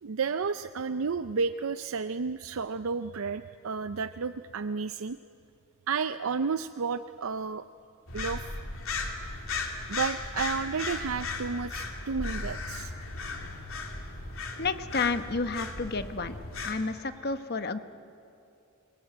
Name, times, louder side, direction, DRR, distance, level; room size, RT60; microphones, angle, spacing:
voice 1, 0.0-5.2 5.9-7.7 8.1-8.5 9.9-12.9, right 5 dB, 75° right, 11 dB, 0.5 m, -32 dB
sound 1, 8.1-16.7, left 3 dB, 75° left, 2.9 m, -36 dB
voice 2, 14.6-16.4 16.6-17.8, left 4 dB, 50° left, 10 dB, 1.1 m, -30 dB
28.0 x 20.0 x 9.2 m, 2.6 s
head